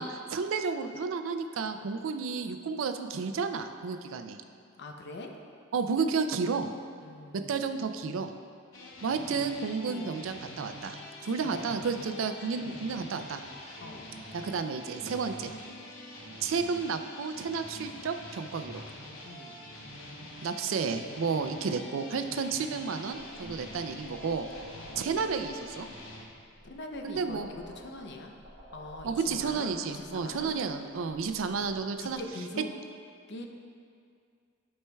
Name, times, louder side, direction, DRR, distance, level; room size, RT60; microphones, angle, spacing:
voice 1, 0.0-4.4 5.7-6.7 7.3-8.3 9.0-11.0 11.2-13.4 14.3-15.5 16.4-18.8 20.4-24.5 25.0-25.9 27.0-27.5 29.0-32.2 32.6-32.7, right 5 dB, 75° right, 8 dB, 0.4 m, -32 dB
voice 2, 4.8-5.3 7.0-7.6 9.9-10.1 11.4-11.7 13.8-14.1 19.2-19.6 24.7-25.0 26.6-27.4 27.7-28.3 28.7-30.6 31.5-32.7 33.3-33.5, left 2 dB, 60° left, 3 dB, 0.6 m, -43 dB
sound 1, 8.7-26.2, left 1 dB, 80° left, 0.9 m, -45 dB
sound 2, 23.9-32.3, equal, 50° right, 1.2 m, -52 dB
13.0 x 4.3 x 2.3 m, 2.2 s
head